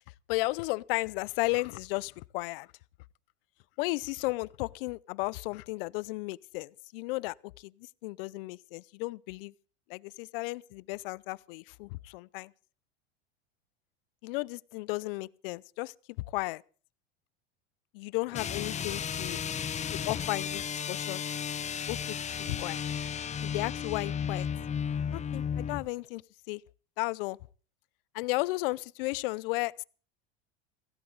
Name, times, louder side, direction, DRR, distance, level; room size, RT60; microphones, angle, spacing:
voice 1, 0.3-2.7 3.8-7.7 8.0-9.5 9.9-12.5 14.2-15.9 16.3-16.6 17.9-19.4 19.9-21.2 21.9-22.8 23.4-24.5 25.1-26.2 26.5-26.6 27.0-27.4 28.1-29.8, left 23 dB, 70° left, 0.6 m, -34 dB
sound 1, 18.3-25.9, left 7 dB, 25° left, 0.8 m, -34 dB
16.0 x 16.0 x 4.0 m
supercardioid pair, 110°, 29 cm